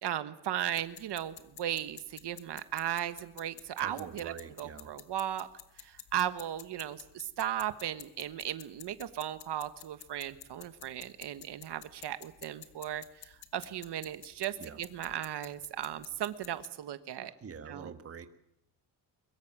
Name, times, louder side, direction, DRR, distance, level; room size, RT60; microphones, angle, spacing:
voice 1, 0.0-5.5 5.8-17.3 17.7-17.9, right 11 dB, 75° right, 12 dB, 1.5 m, -36 dB
sound 1, 0.8-16.7, left 10 dB, 65° left, 1.8 m, -52 dB
voice 2, 3.8-4.9 14.6-14.8 17.2-18.3, right 6 dB, 35° right, 9 dB, 1.6 m, -46 dB
23.5 x 22.0 x 7.5 m, 0.78 s
cardioid pair, 150°, 41 cm